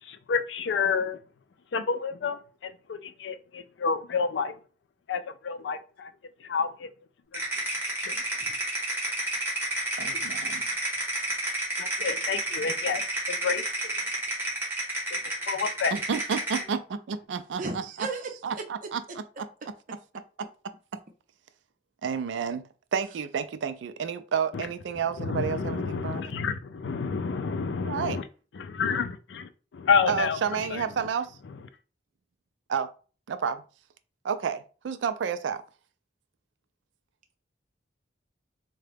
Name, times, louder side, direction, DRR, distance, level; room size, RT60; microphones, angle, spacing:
voice 1, 0.0-1.2 1.7-4.6 5.1-6.1 6.4-6.9 7.3-7.7 8.0-8.6 10.1-10.3 11.8-14.1 15.1-15.2 15.5-16.0 24.5-24.7 25.2-28.2 28.5-30.8 31.4-31.6, left 5 dB, 75° left, 0.4 m, -30 dB
sound 1, 7.3-16.7, right 1 dB, 15° right, 1.2 m, -30 dB
voice 2, 10.0-10.7 15.9-18.1 18.4-20.0 20.9-21.0 22.0-22.6 22.9-26.4 27.9-28.2 30.1-31.4 32.7-32.9 33.3-33.6 34.2-35.6, right 6 dB, 80° right, 0.4 m, -31 dB
voice 3, 17.6-18.6, right 3 dB, 45° right, 0.7 m, -34 dB
3.7 x 2.2 x 3.3 m
head